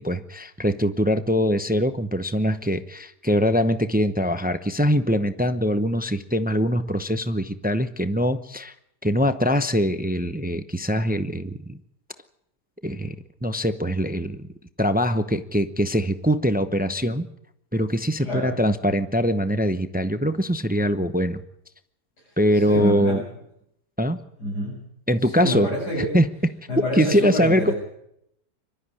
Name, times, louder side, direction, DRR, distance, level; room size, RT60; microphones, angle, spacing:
voice 1, 0.0-8.7 9.0-11.8 12.8-13.1 13.4-14.4 14.8-17.3 17.7-21.4 22.4-23.2 24.0-24.2 25.1-25.7 26.1-26.3 27.0-27.7, equal, 15° right, 10 dB, 0.3 m, -23 dB
voice 2, 18.2-18.6 22.2-23.2 24.4-24.8 25.2-26.1 26.7-27.7, equal, 90° left, -5 dB, 8.4 m, -27 dB
24.0 x 12.5 x 9.8 m, 0.79 s
omnidirectional pair, 1.7 m